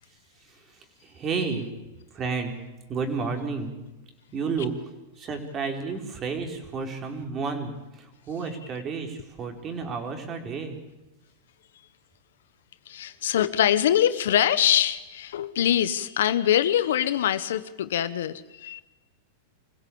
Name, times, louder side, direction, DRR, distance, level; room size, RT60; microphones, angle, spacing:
voice 1, 0.4-1.7 2.1-2.5 2.9-3.7 4.3-4.7 5.2-10.8, right 5 dB, 30° right, 4 dB, 4.4 m, -31 dB
voice 2, 12.9-18.8, left 11 dB, 75° left, 14 dB, 1.2 m, -23 dB
25.0 x 16.0 x 8.7 m, 1.1 s
hypercardioid pair, 110°, 0 cm